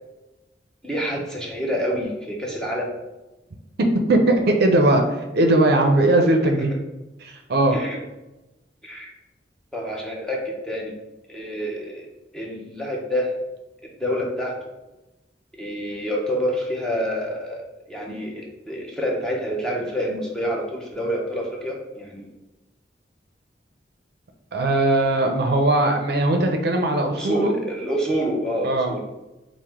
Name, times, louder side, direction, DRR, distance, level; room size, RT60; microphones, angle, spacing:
voice 1, 0.8-2.9 6.6-6.7 7.7-8.0 8.8-9.1 9.7-10.9 11.3-12.1 12.3-13.3 14.0-14.6 15.5-22.3 27.1-29.0, equal, 5° left, -2 dB, 0.7 m, -27 dB
voice 2, 4.1-6.7 7.2-7.8 24.5-27.5 28.6-28.9, right 2 dB, 65° right, 4 dB, 0.5 m, -19 dB
4.7 x 2.1 x 3.5 m, 1.0 s
head